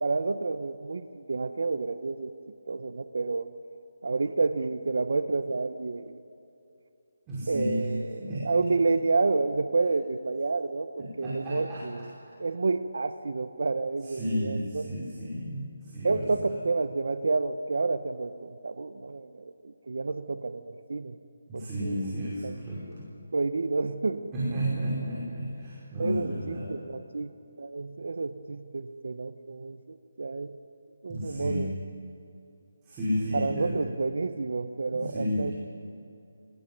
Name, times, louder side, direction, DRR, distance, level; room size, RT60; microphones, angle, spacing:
voice 1, 0.0-2.3 2.7-3.5 4.0-6.1 7.5-8.1 8.4-12.1 12.4-14.9 16.0-21.1 21.5-22.0 22.4-22.5 23.3-24.3 24.5-24.6 26.0-27.3 27.6-30.5 31.0-31.7 33.3-35.5, right 3 dB, 70° right, 12 dB, 1.0 m, -29 dB
voice 2, 7.3-7.9 8.2-8.5 11.0-11.8 14.0-16.5 21.5-23.1 24.3-26.7 31.1-31.7 32.8-33.7 34.9-35.5, equal, 15° right, -9 dB, 5.4 m, -32 dB
22.5 x 20.0 x 9.5 m, 2.8 s
hypercardioid pair, 170°, 0 cm